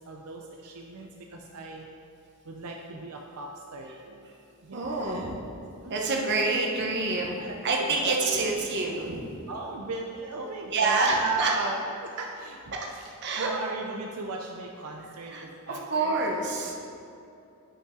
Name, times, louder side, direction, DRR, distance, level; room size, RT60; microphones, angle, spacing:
voice 1, 0.1-1.8 2.5-4.2 4.6-5.3 5.8-6.3 7.4-7.6 7.9-8.4 9.5-16.2, right 3 dB, 80° right, 1 dB, 0.6 m, -37 dB
voice 2, 4.7-5.3 5.9-9.2 10.7-11.7 13.2-13.5 15.3-16.7, right 3 dB, 50° right, 0 dB, 1.0 m, -27 dB
8.4 x 5.5 x 3.7 m, 2.7 s
head